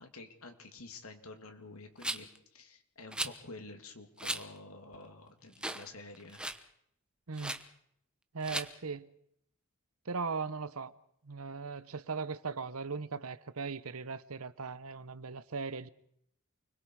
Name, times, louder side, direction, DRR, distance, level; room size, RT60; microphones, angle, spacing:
voice 1, 0.0-6.4, left 2 dB, 75° left, 2.9 m, -49 dB
Rattle, 2.0-2.4 3.1-3.4 4.2-4.4 4.9-5.0 5.6-5.9 6.1-6.6 7.4-7.6 8.4-8.7, right 1 dB, 5° right, 1.0 m, -37 dB
voice 2, 7.3-7.6 8.3-9.1 10.1-10.9 11.2-15.9, right 4 dB, 80° right, 0.9 m, -38 dB
29.0 x 21.5 x 4.8 m
head